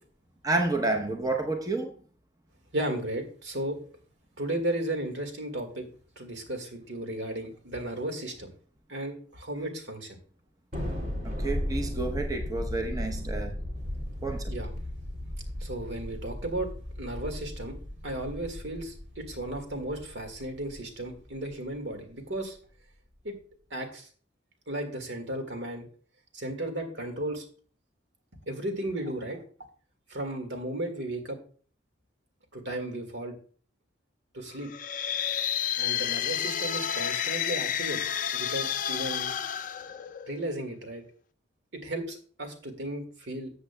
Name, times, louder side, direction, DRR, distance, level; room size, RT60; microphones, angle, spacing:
voice 1, 0.4-2.0 11.2-13.6 14.2-14.5, right 2 dB, 20° right, 0.8 m, -30 dB
voice 2, 2.7-3.8 4.4-5.9 6.2-8.5 8.9-10.2 14.5-14.7 15.6-16.7 17.0-17.8 18.0-22.6 23.2-23.3 23.7-24.1 24.7-25.9 26.3-27.4 28.5-29.4 30.1-31.4 32.5-33.3 34.3-34.7 35.8-38.0 38.3-39.3 40.3-41.0 41.7-43.5, right 1 dB, 70° right, 1.8 m, -34 dB
Thunder, 10.7-21.4, left 1 dB, 50° right, 2.4 m, -36 dB
sound 1, 34.6-40.6, left 9 dB, 45° left, 0.4 m, -30 dB
13.5 x 7.6 x 2.2 m
head